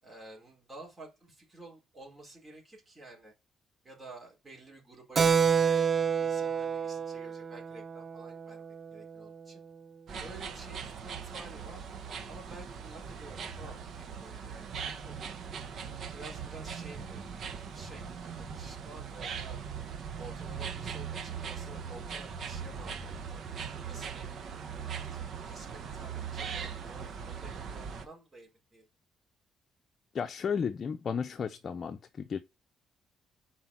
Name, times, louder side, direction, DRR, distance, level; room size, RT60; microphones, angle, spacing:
voice 1, 0.0-3.3 3.8-5.9 6.2-8.7 8.9-9.6 10.2-11.8 12.3-15.2 16.1-17.2 17.7-19.6 20.2-23.4 23.8-24.3 24.9-25.1 25.4-28.9, right 2 dB, 25° right, 4.0 m, -51 dB
Keyboard (musical), 5.2-9.2, right 7 dB, 40° right, 0.5 m, -29 dB
sound 1, 10.1-28.0, right 6 dB, 60° right, 1.1 m, -40 dB
voice 2, 30.1-32.4, left 6 dB, 50° left, 0.6 m, -33 dB
5.7 x 4.4 x 6.1 m
cardioid pair, 90°, 0 cm